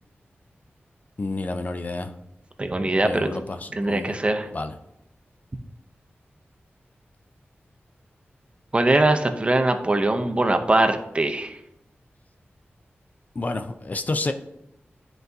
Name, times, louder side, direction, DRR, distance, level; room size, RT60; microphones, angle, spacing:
voice 1, 1.2-2.1 3.0-4.2 4.5-4.8 13.4-14.3, left 2 dB, 40° left, 8 dB, 0.4 m, -29 dB
voice 2, 2.6-3.3 3.7-4.5 8.7-11.6, right 2 dB, 30° right, 6 dB, 0.6 m, -22 dB
10.0 x 3.9 x 2.7 m, 0.82 s
wide cardioid pair, 85°, 4 cm